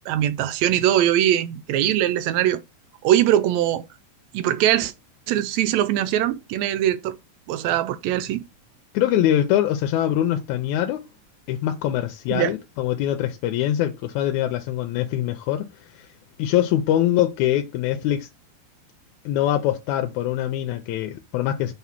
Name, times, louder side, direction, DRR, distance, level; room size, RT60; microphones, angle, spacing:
voice 1, 0.1-2.6 3.0-3.8 4.3-4.9 5.3-7.2 7.5-8.4 12.3-12.5, right 12 dB, 80° right, 1.8 m, -21 dB
voice 2, 8.9-11.0 11.5-15.7 15.9-16.1 16.4-18.3 19.3-21.7, left 12 dB, 85° left, 2.0 m, -23 dB
6.1 x 3.6 x 5.8 m
omnidirectional pair, 3.4 m